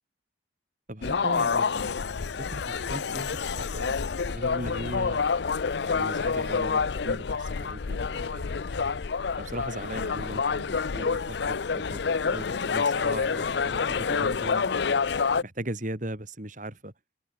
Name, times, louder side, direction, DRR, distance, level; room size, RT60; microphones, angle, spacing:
voice 1, 0.9-4.0 4.2-5.2 5.8-8.9 9.4-15.0 15.4-16.9, right 1 dB, 40° right, 3.4 m, -39 dB
sound 1, 1.0-15.4, left 5 dB, 60° left, 0.5 m, -28 dB
head